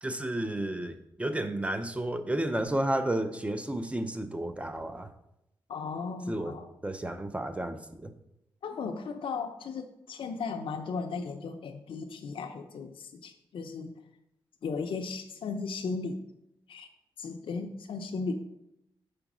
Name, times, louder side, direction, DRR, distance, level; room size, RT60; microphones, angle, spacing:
voice 1, 0.0-5.1 6.3-6.5 6.8-8.1, right 1 dB, 15° right, 9 dB, 0.6 m, -32 dB
voice 2, 5.7-6.7 8.6-13.9 14.6-16.2 16.7-16.9 17.2-18.3, left 4 dB, 70° left, 5 dB, 0.6 m, -36 dB
5.1 x 4.5 x 6.0 m, 0.84 s
cardioid pair, 80°, 9 cm